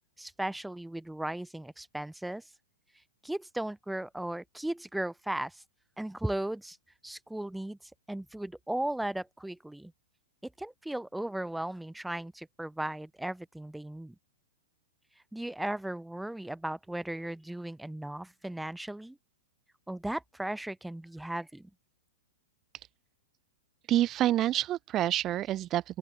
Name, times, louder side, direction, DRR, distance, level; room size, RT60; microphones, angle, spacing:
voice 1, 0.2-2.4 3.2-5.6 6.0-6.8 7.0-9.9 10.4-14.2 15.3-19.2 19.9-21.7, right 1 dB, ahead, 7.4 m, -36 dB
voice 2, 23.9-26.0, right 13 dB, 20° right, 2.8 m, -27 dB
open air
supercardioid pair, 175°, 0 cm